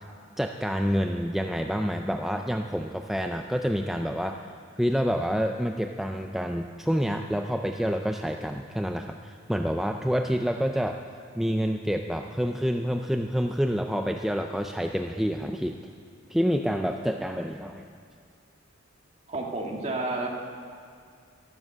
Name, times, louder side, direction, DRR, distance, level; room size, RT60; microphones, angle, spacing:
voice 1, 0.4-4.4 4.8-11.0 11.4-15.8 16.3-17.9, equal, ahead, 4 dB, 0.4 m, -28 dB
voice 2, 19.3-20.3, right 2 dB, 35° right, 0 dB, 1.8 m, -30 dB
12.5 x 12.5 x 7.7 m, 2.3 s
head